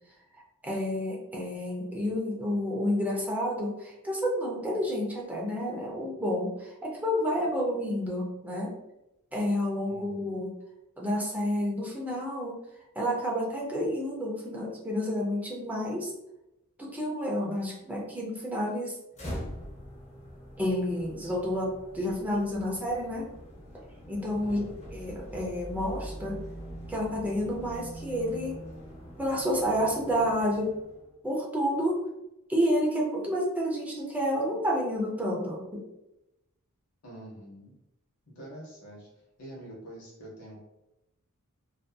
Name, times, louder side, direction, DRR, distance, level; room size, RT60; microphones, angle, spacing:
voice 1, 0.6-8.7 9.3-10.5 11.0-12.6 12.9-16.1 16.8-19.0 20.6-23.3 24.1-24.6 24.9-26.4 26.9-28.5 29.2-30.7 31.2-32.0 32.5-35.8, equal, 5° right, -3 dB, 0.5 m, -30 dB
voice 2, 9.8-10.3 24.4-24.7 37.0-37.7 38.3-39.1 39.4-40.6, right 1 dB, 75° left, -4 dB, 0.8 m, -45 dB
sound 1, 19.1-31.1, equal, 30° left, 0.6 m, -43 dB
2.5 x 2.5 x 2.2 m, 0.91 s
head